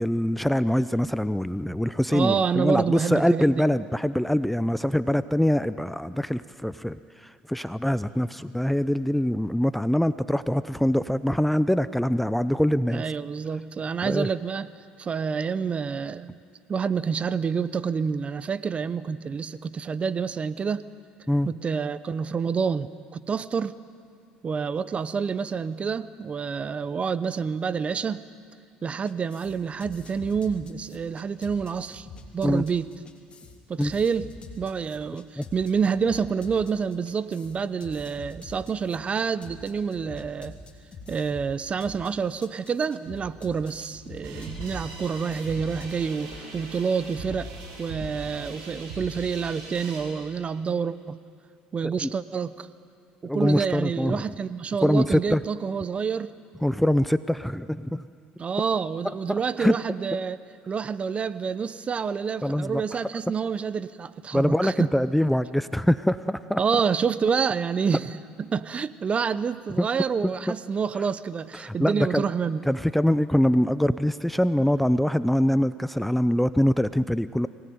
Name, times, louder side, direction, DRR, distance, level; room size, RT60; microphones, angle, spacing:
voice 1, 0.0-13.0 14.0-14.3 21.3-21.5 32.4-32.6 33.8-33.9 35.4-35.5 51.8-52.1 53.2-54.2 54.8-55.4 56.6-58.1 59.3-59.8 62.4-62.8 64.3-66.6 69.8-69.9 70.2-70.5 71.5-72.2 72.7-77.5, equal, 5° left, 14 dB, 0.6 m, -24 dB
voice 2, 2.1-3.4 12.9-14.7 15.0-16.4 16.7-20.8 21.5-23.7 24.4-28.2 28.8-32.1 32.3-32.9 33.7-34.3 34.6-40.5 41.1-47.5 47.8-51.2 51.7-52.7 53.2-56.3 58.4-60.4 60.7-64.7 66.6-72.6, right 6 dB, 35° right, 16 dB, 0.9 m, -28 dB
sound 1, 29.1-45.9, left 3 dB, 30° left, 3.1 m, -45 dB
sound 2, 44.2-50.0, right 2 dB, 80° right, 7.3 m, -40 dB
24.0 x 18.5 x 9.6 m, 2.2 s
supercardioid pair, 80°, 4 cm